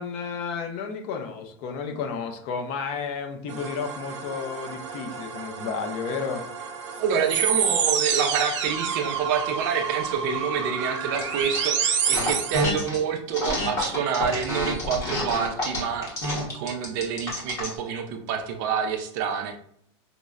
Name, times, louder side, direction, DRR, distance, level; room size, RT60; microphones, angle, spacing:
voice 1, 0.0-6.4, left 5 dB, 35° left, 4 dB, 0.4 m, -32 dB
sound 1, 3.5-12.6, right 7 dB, 80° right, 0.7 m, -29 dB
voice 2, 7.0-19.6, right 7 dB, 40° right, 5 dB, 0.4 m, -27 dB
sound 2, 11.2-11.7 12.0-13.0 13.3-17.8, left 1 dB, 20° left, 0.9 m, -28 dB
5.1 x 2.0 x 2.3 m, 0.65 s
supercardioid pair, 170°, 15 cm